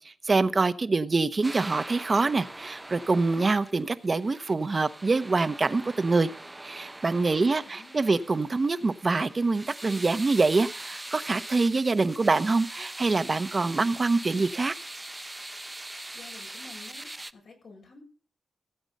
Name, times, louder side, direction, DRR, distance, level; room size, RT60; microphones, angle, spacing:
voice 1, 0.0-6.3 6.6-14.7, right 3 dB, 45° right, 12 dB, 1.0 m, -25 dB
sound 1, 1.4-17.3, right 1 dB, 20° right, 0.7 m, -42 dB
voice 2, 7.4-8.2 15.9-18.0, left 3 dB, 75° left, 1 dB, 7.1 m, -51 dB
16.0 x 8.0 x 5.4 m, 0.40 s
cardioid pair, 60°, 0 cm